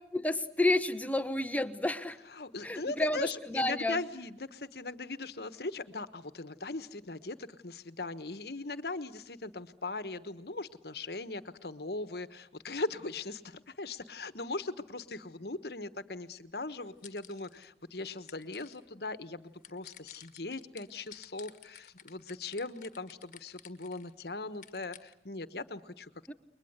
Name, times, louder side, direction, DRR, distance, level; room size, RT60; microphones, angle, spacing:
voice 1, 0.1-2.2 2.6-4.0 26.3-26.4, left 1 dB, 10° left, 9 dB, 1.0 m, -30 dB
voice 2, 2.3-26.1, left 3 dB, 60° left, 13 dB, 1.3 m, -39 dB
sound 1, 16.8-17.7 18.1-18.8 19.6-24.1 24.5-25.1, left 10 dB, 45° left, 1.6 m, -53 dB
30.0 x 22.5 x 8.1 m, 0.78 s
head